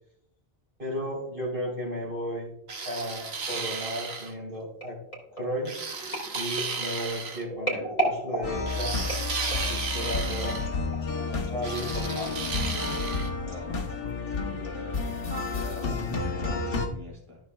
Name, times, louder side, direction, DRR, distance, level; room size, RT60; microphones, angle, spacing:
voice 1, 0.8-2.5 2.9-5.0 5.4-5.8 6.3-9.0 9.5-10.7 11.3-12.4, equal, 55° right, -5 dB, 3.9 m, -34 dB
sound 1, 2.7-4.3 5.6-7.4 8.7-10.7 11.6-13.3, right 4 dB, 80° right, 1.3 m, -34 dB
sound 2, 4.8-9.8 10.4-10.6 10.9-11.0, right 2 dB, 35° left, 2.6 m, -34 dB
sound 3, 8.4-16.9, left 3 dB, 65° left, 1.3 m, -31 dB
voice 2, 14.3-17.4, left 2 dB, 30° right, -3 dB, 2.5 m, -43 dB
13.5 x 6.4 x 2.3 m, 0.73 s
omnidirectional pair, 1.0 m